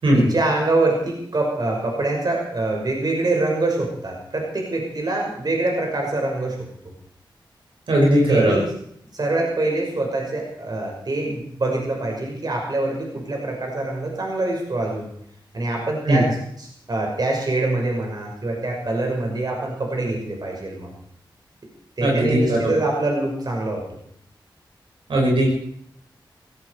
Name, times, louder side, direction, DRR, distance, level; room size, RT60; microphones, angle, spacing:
voice 1, 0.1-6.6 8.3-8.7 9.1-15.1 15.5-16.3 16.6-20.9 22.0-23.8, right 2 dB, 50° right, 0 dB, 6.1 m, -24 dB
voice 2, 7.9-8.6 16.1-16.2 22.0-22.7 25.1-25.5, right 1 dB, 80° right, -2 dB, 6.4 m, -18 dB
17.5 x 16.5 x 4.9 m, 0.67 s
cardioid pair, 55°, 9 cm